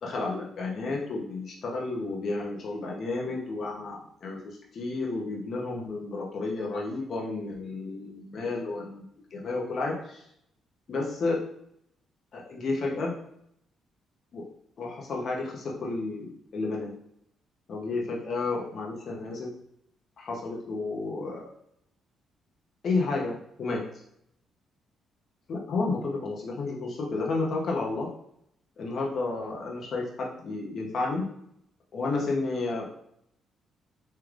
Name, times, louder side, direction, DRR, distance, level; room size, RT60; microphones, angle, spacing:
voice 1, 0.0-9.0 9.3-10.2 10.9-11.4 12.3-13.1 14.3-14.5 14.8-16.9 17.7-19.5 20.2-21.5 22.8-23.9 25.5-28.1 28.8-31.2 31.9-32.9, left 3 dB, 55° left, -2 dB, 0.7 m, -31 dB
3.2 x 3.2 x 2.4 m, 0.73 s
cardioid pair, 90°, 0 cm